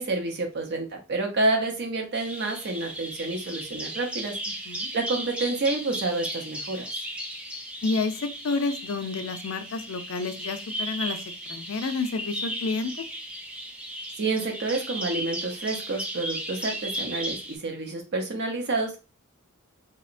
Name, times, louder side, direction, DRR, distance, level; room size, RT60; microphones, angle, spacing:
voice 1, 0.0-4.4 4.9-6.9 14.2-19.0, right 2 dB, 50° right, 2 dB, 0.6 m, -29 dB
Bird vocalization bird call bird song, 2.1-17.6, right 1 dB, 5° right, 0.3 m, -35 dB
voice 2, 4.5-4.9 7.8-11.2 11.5-13.0, left 3 dB, 65° left, 8 dB, 0.4 m, -30 dB
2.8 x 2.1 x 2.5 m, 0.29 s
head